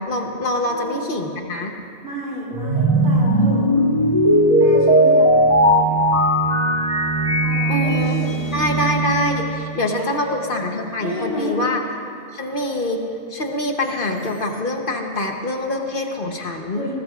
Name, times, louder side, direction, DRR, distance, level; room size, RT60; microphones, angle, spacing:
voice 1, 0.0-1.7 7.7-11.8 12.3-13.0 13.3-16.8, left 1 dB, 50° left, 2 dB, 1.2 m, -24 dB
voice 2, 0.6-1.1 2.0-3.7 4.6-5.3 7.4-8.6 10.0-10.4 11.0-11.6 16.7-16.9, equal, 70° right, -6 dB, 4.7 m, -31 dB
sound 1, 2.5-9.8, right 1 dB, 30° left, 1.4 m, -18 dB
20.5 x 19.0 x 2.5 m, 2.4 s
omnidirectional pair, 1.1 m